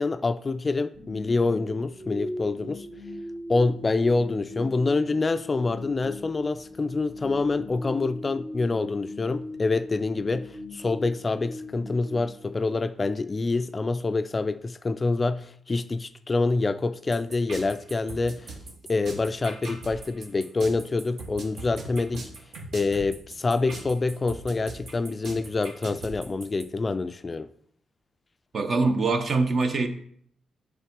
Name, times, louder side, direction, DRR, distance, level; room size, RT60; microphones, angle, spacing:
voice 1, 0.0-2.9 3.5-18.5 18.9-22.3 22.7-27.5, left 3 dB, 30° left, 0.3 m, -26 dB
sound 1, 1.0-13.1, left 1 dB, 30° right, 1.2 m, -39 dB
sound 2, 17.1-26.6, right 2 dB, 65° right, 1.5 m, -40 dB
voice 2, 28.5-29.9, right 3 dB, 50° right, 0.8 m, -23 dB
7.3 x 3.6 x 5.2 m
cardioid pair, 90°, 0 cm